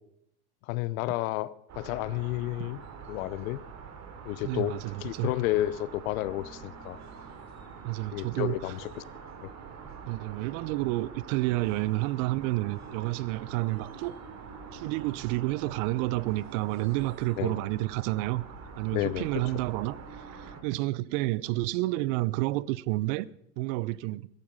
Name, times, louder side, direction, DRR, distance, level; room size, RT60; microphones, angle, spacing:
voice 1, 0.7-2.8 3.1-3.6 4.2-7.0 8.1-9.0 9.4-9.5 17.4-17.6 18.9-19.4, left 16 dB, 65° left, 0.9 m, -31 dB
sound 1, 1.7-20.6, right 6 dB, 40° right, 2.9 m, -45 dB
voice 2, 4.4-5.3 7.8-8.6 10.1-14.2 14.7-18.4 18.8-23.3 23.6-24.3, right 19 dB, 55° right, 0.7 m, -30 dB
16.0 x 13.5 x 5.5 m
hypercardioid pair, 90°, 44 cm